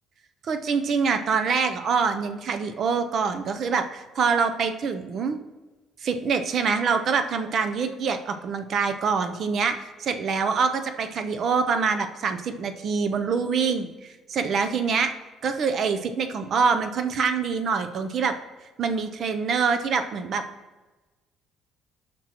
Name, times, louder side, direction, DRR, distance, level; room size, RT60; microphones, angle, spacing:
voice 1, 0.4-5.4 6.0-15.1 15.4-18.3 18.8-20.4, right 5 dB, 50° right, 8 dB, 0.6 m, -25 dB
10.0 x 6.1 x 3.0 m, 1.2 s
cardioid pair, 125°, 0 cm